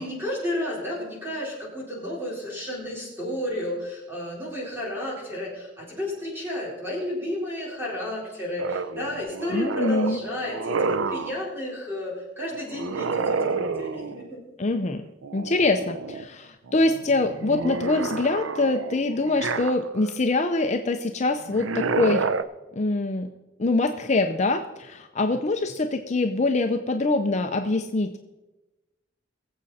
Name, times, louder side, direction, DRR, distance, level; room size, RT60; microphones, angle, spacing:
voice 1, 0.0-14.4, left 1 dB, 10° right, -4 dB, 4.3 m, -32 dB
sound 1, 8.6-11.4 12.7-14.3 15.2-16.3 16.7-20.2 21.4-22.4, right 4 dB, 90° right, 0.6 m, -29 dB
voice 2, 9.5-10.2 14.6-15.1 15.3-22.3 22.8-23.3 23.6-28.2, left 2 dB, 35° left, 6 dB, 0.6 m, -24 dB
22.0 x 7.7 x 4.2 m, 1.1 s
head